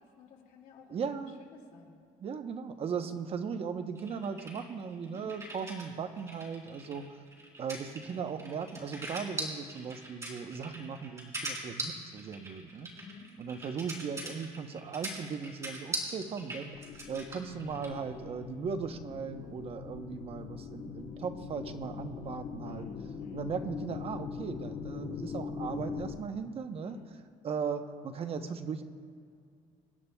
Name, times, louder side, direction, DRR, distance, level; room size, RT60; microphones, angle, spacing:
voice 1, 0.0-2.0 4.9-5.2 12.9-13.3 22.6-23.5 26.7-27.2, left 5 dB, 85° left, -1 dB, 2.2 m, -53 dB
voice 2, 0.9-1.5 2.2-7.2 7.6-12.9 13.4-22.9 23.3-27.0 27.4-28.8, right 6 dB, 45° right, 8 dB, 0.8 m, -38 dB
sound 1, 3.9-5.9 6.2-18.0, right 1 dB, 20° right, 3.1 m, -41 dB
sound 2, 16.7-26.2, left 6 dB, 55° left, 0.9 m, -42 dB
25.5 x 11.0 x 2.3 m, 2.3 s
cardioid pair, 125°, 14 cm